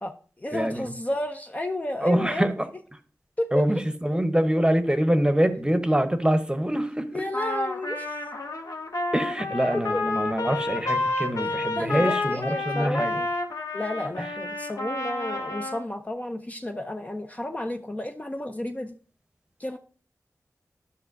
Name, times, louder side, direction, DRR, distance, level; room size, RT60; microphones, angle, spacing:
voice 1, 0.0-2.5 3.4-3.6 7.1-8.2 9.7-10.0 11.4-13.3 13.7-18.9 19.6-19.8, left 1 dB, 25° left, 0.5 m, -32 dB
voice 2, 0.5-0.9 2.0-2.7 3.5-7.1 9.1-13.2, right 1 dB, 15° right, 0.9 m, -24 dB
Trumpet, 7.3-15.8, left 2 dB, 65° left, 1.1 m, -30 dB
11.0 x 5.5 x 2.6 m
cardioid pair, 45°, 6 cm